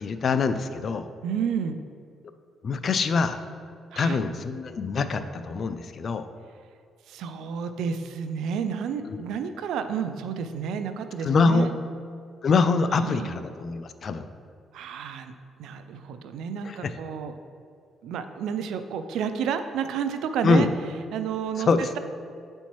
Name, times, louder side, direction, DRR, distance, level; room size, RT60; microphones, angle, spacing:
voice 1, 0.0-1.1 2.6-3.4 4.0-6.3 9.1-9.2 11.2-11.7 12.4-14.3 16.6-16.9 20.4-20.7 21.6-21.9, left 4 dB, 50° left, 10 dB, 0.3 m, -24 dB
voice 2, 1.2-1.8 3.9-4.2 7.1-11.7 12.9-13.3 14.7-15.3 15.6-17.3 18.0-20.7 21.1-21.7, right 7 dB, 85° right, 9 dB, 0.3 m, -30 dB
7.9 x 4.3 x 3.0 m, 2.3 s
cardioid pair, 90°, 0 cm